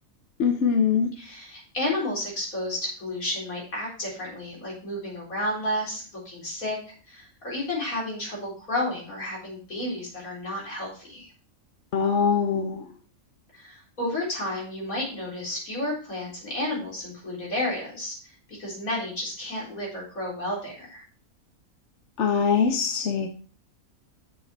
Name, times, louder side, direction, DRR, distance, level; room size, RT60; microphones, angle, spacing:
voice 1, 0.4-1.1 11.9-12.8 22.2-23.3, left 6 dB, 60° left, 5 dB, 1.1 m, -22 dB
voice 2, 1.2-6.8 7.1-11.3 13.5-21.0, left 1 dB, 85° left, -4 dB, 4.5 m, -32 dB
7.6 x 6.6 x 4.3 m, 0.40 s
omnidirectional pair, 1.4 m